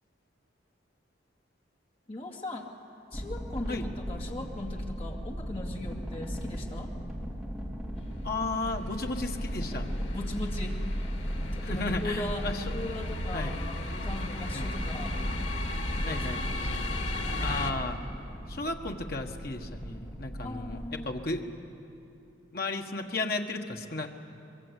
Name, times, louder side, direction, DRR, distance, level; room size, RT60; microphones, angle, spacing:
voice 1, 2.1-2.7 3.1-6.9 10.1-10.8 11.5-15.3 16.0-16.6 20.4-21.1, left 1 dB, 30° left, 0 dB, 2.5 m, -39 dB
sound 1, 3.1-21.1, equal, ahead, 3.2 m, -39 dB
sound 2, 8.0-17.7, left 1 dB, 80° left, 2.1 m, -34 dB
voice 2, 8.2-9.9 11.6-12.7 13.3-13.5 14.5-14.7 16.0-16.5 17.4-18.0 18.5-21.5 22.5-24.1, left 2 dB, 55° left, 3 dB, 1.4 m, -34 dB
24.0 x 22.0 x 8.3 m, 2.8 s
head